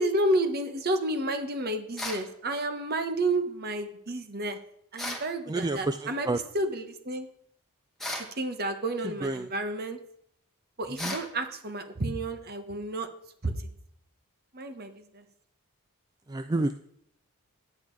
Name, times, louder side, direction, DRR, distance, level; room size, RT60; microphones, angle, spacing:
voice 1, 0.0-4.6 4.9-7.3 8.1-10.0 10.8-13.1 13.4-13.7 14.5-15.2, right 1 dB, 45° right, 8 dB, 1.2 m, -31 dB
sound 1, 2.0-2.3 5.0-5.3 8.0-8.3 11.0-11.3, left 1 dB, ahead, 1.5 m, -35 dB
voice 2, 5.5-6.0 6.3-6.4 9.2-9.4 11.0-11.1 16.3-16.7, right 2 dB, 20° right, 9 dB, 0.3 m, -28 dB
10.5 x 9.1 x 4.7 m, 0.69 s
head